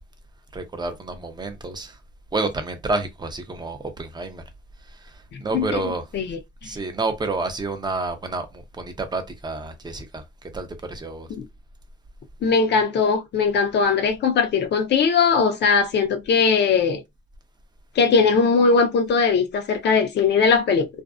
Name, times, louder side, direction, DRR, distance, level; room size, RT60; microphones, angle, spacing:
voice 1, 0.5-2.0 2.3-4.4 4.9-6.1 6.6-11.3, right 3 dB, 20° right, 0.6 m, -29 dB
voice 2, 12.4-17.0 18.0-20.9, left 5 dB, 60° left, 0.7 m, -19 dB
2.5 x 2.0 x 2.4 m
cardioid pair, 90°, 20 cm